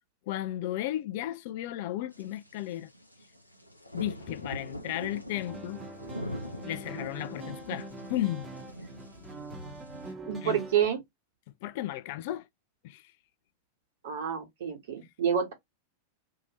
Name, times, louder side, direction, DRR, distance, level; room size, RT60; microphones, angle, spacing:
voice 1, 0.3-2.9 3.9-5.8 6.6-8.5 10.4-10.6 11.6-12.5 12.8-13.1, left 14 dB, 50° left, 0.3 m, -34 dB
sound 1, 2.1-10.1, equal, 90° left, 0.6 m, -42 dB
sound 2, 5.3-10.9, right 2 dB, 10° right, 0.9 m, -44 dB
voice 2, 10.2-11.0 14.0-15.5, right 8 dB, 55° right, 1.2 m, -28 dB
2.8 x 2.7 x 2.8 m
figure-of-eight pair, 90°, 0 cm